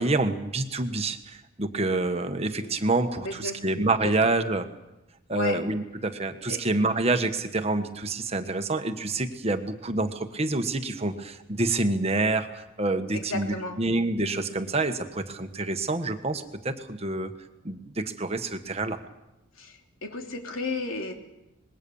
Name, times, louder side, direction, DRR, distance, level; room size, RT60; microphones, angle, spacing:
voice 1, 0.0-4.6 5.3-17.3 17.6-19.0, right 2 dB, 30° right, 7 dB, 1.4 m, -27 dB
voice 2, 3.2-3.6 4.0-4.3 5.3-5.6 6.5-6.7 13.1-13.8 19.6-21.3, left 3 dB, 80° left, 3 dB, 3.1 m, -34 dB
26.0 x 21.0 x 7.2 m, 0.94 s
head